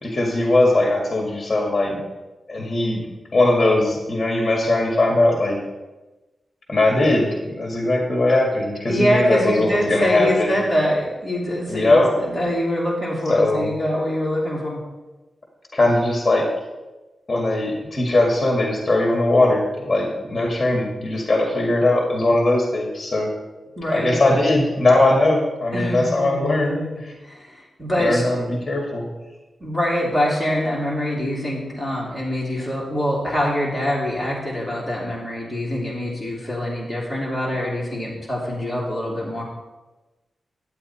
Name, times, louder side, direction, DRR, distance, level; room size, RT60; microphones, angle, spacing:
voice 1, 0.0-2.0 2.5-3.0 3.3-5.6 6.7-10.6 11.7-12.1 13.3-13.7 15.7-16.4 17.3-23.3 23.9-26.8 27.0-27.1 28.0-29.1, left 2 dB, 25° left, 0 dB, 1.9 m, -20 dB
voice 2, 8.9-14.8 23.8-24.2 25.7-28.4 29.6-39.4, equal, ahead, -5 dB, 3.1 m, -24 dB
11.0 x 8.5 x 4.3 m, 1.1 s
wide cardioid pair, 115°, 0 cm